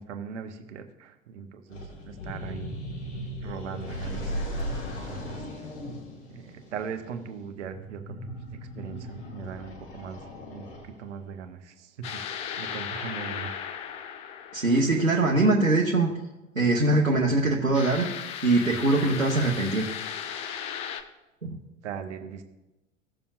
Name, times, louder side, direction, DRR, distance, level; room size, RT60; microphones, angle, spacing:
voice 1, 0.0-2.8 3.4-4.4 5.1-5.5 6.3-8.3 8.7-10.2 10.5-12.2 12.6-13.6 21.8-22.4, right 7 dB, 60° right, 7 dB, 1.1 m, -39 dB
sound 1, 1.7-11.2, equal, 55° left, 2.3 m, -37 dB
sound 2, 12.0-15.5 17.7-21.0, left 8 dB, 20° left, 0.3 m, -36 dB
voice 2, 14.5-16.1 16.5-18.1 18.4-19.9 21.4-21.6, right 2 dB, 90° right, -1 dB, 1.1 m, -22 dB
16.5 x 6.9 x 2.5 m, 1.0 s
figure-of-eight pair, 85°, 39 cm